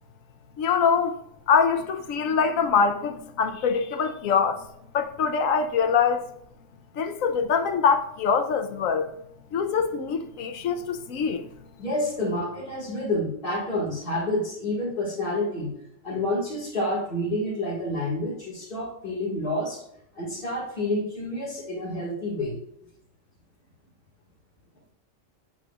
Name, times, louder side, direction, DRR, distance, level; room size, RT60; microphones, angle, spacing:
voice 1, 0.6-1.2 1.5-4.6 4.9-6.3 7.0-9.1 9.5-11.5, left 6 dB, 85° left, 1.1 m, -24 dB
voice 2, 11.8-15.7 16.0-19.8 20.2-22.6, left 1 dB, 45° left, 1.9 m, -28 dB
8.1 x 6.2 x 2.3 m
omnidirectional pair, 1.4 m